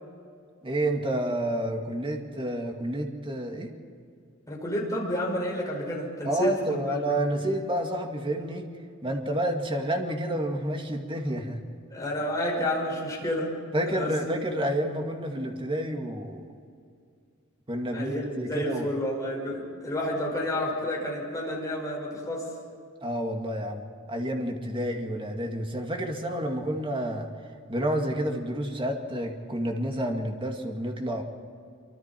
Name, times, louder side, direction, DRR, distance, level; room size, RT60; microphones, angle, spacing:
voice 1, 0.6-3.7 6.2-8.7 9.0-11.6 13.7-16.4 17.7-18.9 23.0-27.3 27.7-31.2, right 1 dB, 25° right, 2 dB, 2.1 m, -29 dB
voice 2, 4.5-7.1 11.9-13.5 13.9-14.4 17.9-22.5, left 1 dB, 15° left, -3 dB, 5.9 m, -30 dB
27.0 x 24.5 x 4.5 m, 2.3 s
head